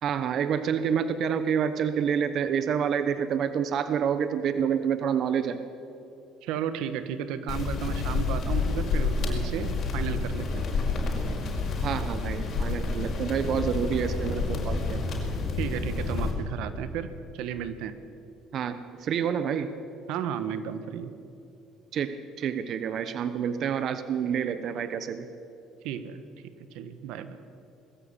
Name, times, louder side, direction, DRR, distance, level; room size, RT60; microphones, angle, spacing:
voice 1, 0.0-5.6 11.8-15.0 18.5-19.7 21.9-25.3, right 7 dB, 55° right, 11 dB, 1.1 m, -28 dB
voice 2, 6.4-10.6 15.6-17.1 17.3-18.0 20.1-21.1 25.8-26.2 26.7-27.4, right 8 dB, 80° right, 11 dB, 1.3 m, -33 dB
sound 1, 7.5-16.3, left 3 dB, 50° left, 5.4 m, -29 dB
21.0 x 14.5 x 8.9 m, 2.6 s
supercardioid pair, 90°, 0 cm